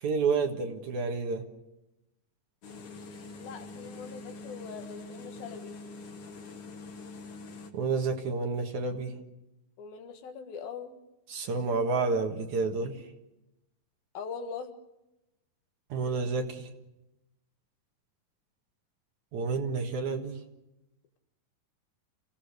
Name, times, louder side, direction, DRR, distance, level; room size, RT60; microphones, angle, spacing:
voice 1, 0.0-1.4 7.7-9.2 11.3-13.0 15.9-16.7 19.3-20.4, right 4 dB, 60° right, 4 dB, 2.8 m, -29 dB
sound 1, 2.6-7.7, left 3 dB, 45° left, 2.1 m, -44 dB
voice 2, 3.4-5.8 9.8-11.0 14.2-14.7, left 6 dB, 90° left, 6 dB, 3.5 m, -41 dB
28.5 x 17.0 x 6.6 m, 0.94 s
omnidirectional pair, 4.1 m